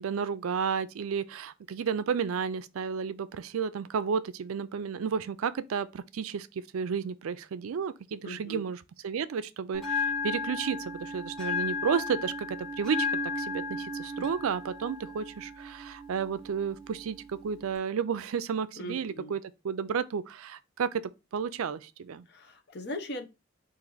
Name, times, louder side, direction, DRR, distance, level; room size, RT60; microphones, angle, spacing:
voice 1, 0.0-6.5 6.7-8.8 9.0-19.4 19.6-21.0 21.3-22.2, right 6 dB, 90° right, 0.4 m, -32 dB
voice 2, 8.2-8.6 14.2-14.3 18.8-19.4 22.3-23.3, left 1 dB, 50° left, 0.7 m, -39 dB
Bell, 9.7-17.7, left 3 dB, ahead, 1.7 m, -35 dB
4.2 x 2.6 x 3.8 m
head